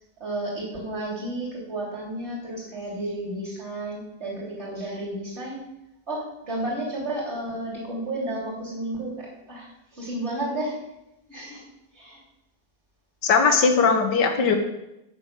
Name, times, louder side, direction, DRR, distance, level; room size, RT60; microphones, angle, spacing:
voice 1, 0.2-5.6 6.1-10.8 11.3-11.7 11.9-12.2, right 1 dB, 40° right, -4 dB, 3.9 m, -32 dB
voice 2, 13.2-14.5, left 5 dB, 85° left, 5 dB, 1.9 m, -19 dB
8.8 x 6.6 x 7.0 m, 0.90 s
omnidirectional pair, 1.8 m